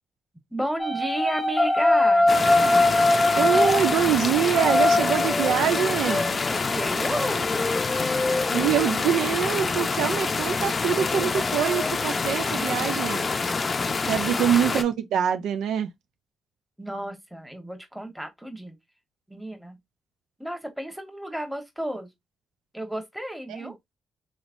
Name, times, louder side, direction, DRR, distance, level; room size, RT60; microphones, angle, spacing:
voice 1, 0.5-2.3 6.5-7.7 12.9-13.6 14.0-14.6 16.8-18.8 19.3-19.8 20.4-22.1 22.7-23.7, right 1 dB, 5° right, 1.1 m, -33 dB
sound 1, 0.8-6.5 7.0-9.4 10.9-11.9, left 2 dB, 15° left, 0.8 m, -23 dB
sound 2, 2.3-14.8, left 4 dB, 40° left, 0.5 m, -27 dB
voice 2, 3.4-6.4 8.5-13.2 14.1-15.9 23.6-23.7, right 9 dB, 85° right, 0.4 m, -24 dB
3.1 x 3.1 x 2.5 m
supercardioid pair, 60°, 0 cm